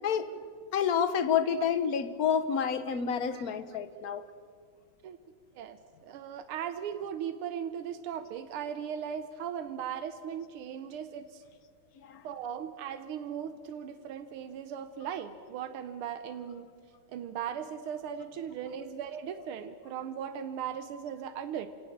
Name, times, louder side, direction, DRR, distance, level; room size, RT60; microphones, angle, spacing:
voice 1, 0.0-0.4 0.7-4.2 12.1-12.2, left 7 dB, 50° left, 12 dB, 1.3 m, -29 dB
voice 2, 6.0-11.4 12.2-16.7 17.1-21.7, right 8 dB, 90° right, 9 dB, 1.8 m, -38 dB
28.5 x 17.5 x 7.3 m, 2.2 s
omnidirectional pair, 2.3 m